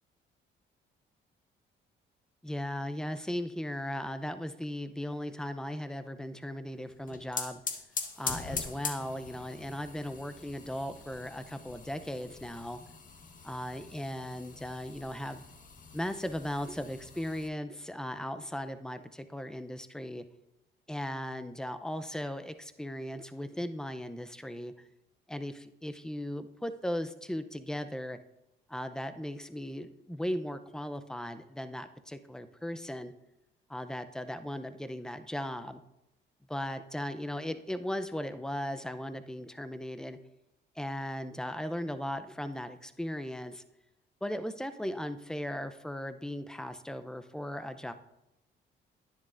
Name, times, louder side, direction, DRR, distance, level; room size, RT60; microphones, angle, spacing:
voice 1, 2.4-7.6 8.2-12.8 13.4-15.4 15.9-20.2 20.9-24.7 25.3-28.2 28.7-33.1 33.7-35.8 36.5-40.2 40.8-43.6 44.2-47.9, left 1 dB, 5° left, 10 dB, 0.5 m, -37 dB
sound 1, 6.9-17.5, left 5 dB, 40° left, 1.0 m, -42 dB
10.5 x 9.7 x 2.5 m, 0.90 s
cardioid pair, 90°, 20 cm